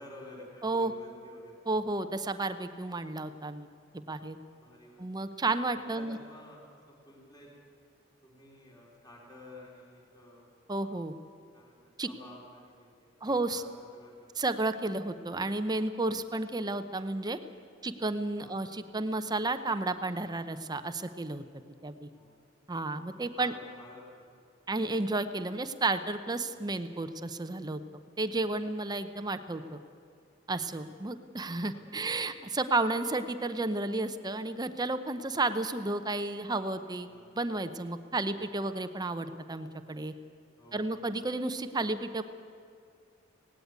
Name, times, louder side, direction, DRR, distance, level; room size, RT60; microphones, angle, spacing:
voice 1, 0.0-1.7 4.0-5.2 5.8-7.5 8.2-10.5 10.8-11.0 11.5-11.8 12.1-13.2 13.5-14.4 18.4-18.6 22.1-22.3 23.3-24.2 28.4-28.7 30.7-30.9 31.6-31.8 37.1-37.3 40.6-40.9, left 1 dB, 20° left, -2 dB, 3.8 m, -52 dB
voice 2, 1.7-3.7 3.9-4.4 5.0-6.2 10.7-11.1 12.0-12.1 13.2-13.6 14.4-17.4 17.8-21.4 21.8-22.1 22.7-23.5 24.7-27.8 28.2-29.8 30.5-37.1 37.3-40.1 40.7-42.2, right 2 dB, 20° right, 10 dB, 0.7 m, -32 dB
18.0 x 16.5 x 9.5 m, 2.3 s
head